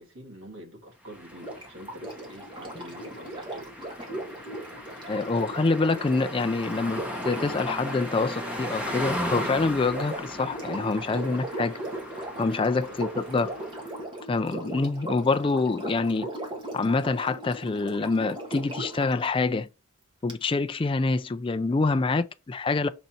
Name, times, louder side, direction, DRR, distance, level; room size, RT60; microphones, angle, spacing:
voice 1, 0.0-3.8 12.3-13.0, equal, 75° right, 2.3 m, -46 dB
sound 1, 1.1-14.0, equal, 5° right, 1.2 m, -37 dB
Sink (filling or washing), 1.3-19.1 20.3-20.4, right 1 dB, 25° right, 1.5 m, -38 dB
voice 2, 5.1-11.8 12.4-13.5 14.3-16.3 16.7-19.7 20.2-22.9, left 3 dB, 25° left, 0.3 m, -26 dB
6.5 x 4.1 x 4.3 m
head